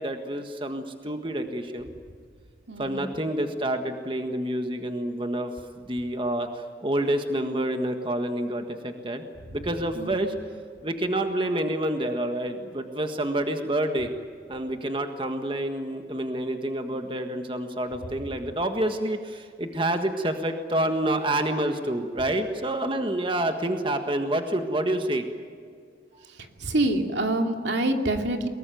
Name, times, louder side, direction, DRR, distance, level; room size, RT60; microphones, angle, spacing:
voice 1, 0.0-1.9 2.8-9.2 9.5-10.3 10.8-14.1 14.5-25.3, right 1 dB, 30° right, 6 dB, 1.6 m, -28 dB
voice 2, 2.7-3.1 10.0-10.3 26.6-28.5, right 1 dB, 80° right, 4 dB, 2.6 m, -26 dB
23.5 x 21.5 x 9.3 m, 2.1 s
head